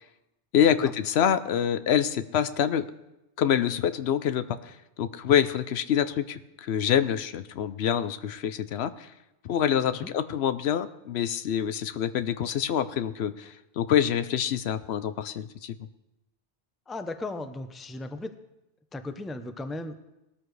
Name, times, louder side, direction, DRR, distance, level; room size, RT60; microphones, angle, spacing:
voice 1, 0.5-2.9 3.4-9.1 9.4-15.8, left 9 dB, 75° left, 13 dB, 0.9 m, -26 dB
voice 2, 16.9-18.4 18.9-20.0, left 2 dB, ahead, 8 dB, 0.5 m, -36 dB
20.0 x 14.0 x 3.2 m, 0.94 s
omnidirectional pair, 1.1 m